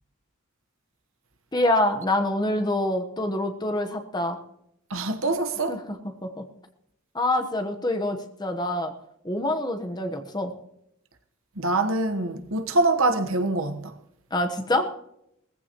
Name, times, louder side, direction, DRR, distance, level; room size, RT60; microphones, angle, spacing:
voice 1, 1.5-4.4 5.7-5.8 6.2-6.4 7.1-8.9 9.2-10.5 14.3-14.9, left 1 dB, 20° left, 1.1 m, -26 dB
voice 2, 4.9-5.8 11.5-14.0, right 2 dB, 70° right, 1.2 m, -24 dB
19.5 x 15.0 x 3.0 m
head